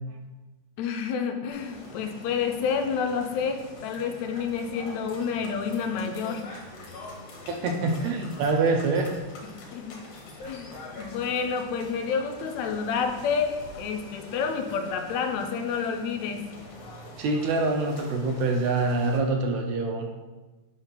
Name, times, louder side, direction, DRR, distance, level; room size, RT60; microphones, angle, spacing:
voice 1, 0.8-6.4 9.7-10.0 10.4-10.7 11.0-16.4, left 6 dB, 80° left, 5 dB, 1.8 m, -29 dB
sound 1, 1.5-19.2, left 2 dB, 65° left, 2.0 m, -44 dB
voice 2, 7.5-9.1 17.2-20.1, right 3 dB, 80° right, 3 dB, 1.8 m, -25 dB
4.8 x 3.6 x 5.6 m, 1.2 s
omnidirectional pair, 3.4 m